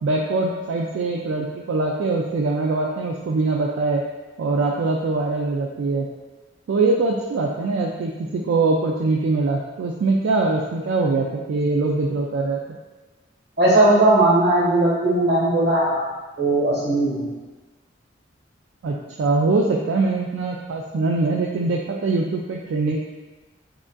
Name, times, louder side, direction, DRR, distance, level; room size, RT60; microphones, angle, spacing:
voice 1, 0.0-4.0 4.4-6.1 6.7-12.6 18.8-23.0, right 3 dB, 80° right, -1 dB, 0.3 m, -22 dB
voice 2, 13.6-16.1 16.4-17.3, right 2 dB, 60° right, -7 dB, 1.4 m, -18 dB
4.9 x 2.5 x 2.2 m, 1.2 s
head